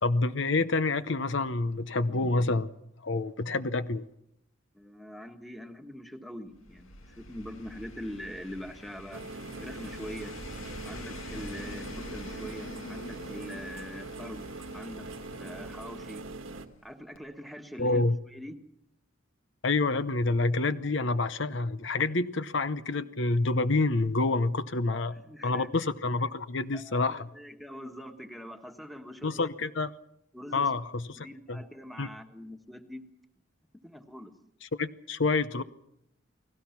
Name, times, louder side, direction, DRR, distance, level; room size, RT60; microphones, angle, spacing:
voice 1, 0.0-2.7 3.0-4.0 17.8-18.2 19.6-25.1 25.4-27.3 29.2-29.9 30.5-31.6 32.0-32.1 34.7-35.6, left 3 dB, 65° left, 0.8 m, -28 dB
voice 2, 4.7-9.2 9.6-10.4 10.8-15.1 15.3-16.2 16.8-18.0 18.3-18.6 24.9-25.7 26.7-29.5 30.3-30.7 31.2-33.1 33.8-34.3, equal, ahead, 1.6 m, -43 dB
sound 1, 6.5-16.9 17.1-17.2, left 2 dB, 85° left, 2.4 m, -46 dB
sound 2, 9.1-16.7, right 3 dB, 90° right, 1.7 m, -42 dB
29.5 x 19.5 x 5.9 m
head